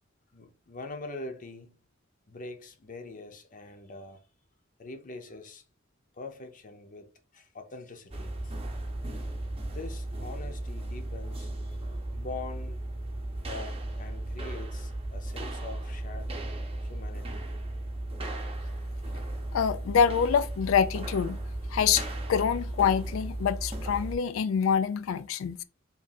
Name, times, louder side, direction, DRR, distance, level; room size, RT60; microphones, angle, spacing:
voice 1, 0.3-1.8 2.3-4.2 4.8-5.6 6.1-8.6 9.7-11.8 12.1-12.8 13.4-16.3 16.8-17.5, left 3 dB, 40° left, 0.7 m, -43 dB
sound 1, 8.1-24.2, right 1 dB, 30° right, 0.7 m, -35 dB
voice 2, 19.5-21.4 21.7-25.6, left 7 dB, 75° left, 0.3 m, -26 dB
3.6 x 2.6 x 4.0 m
head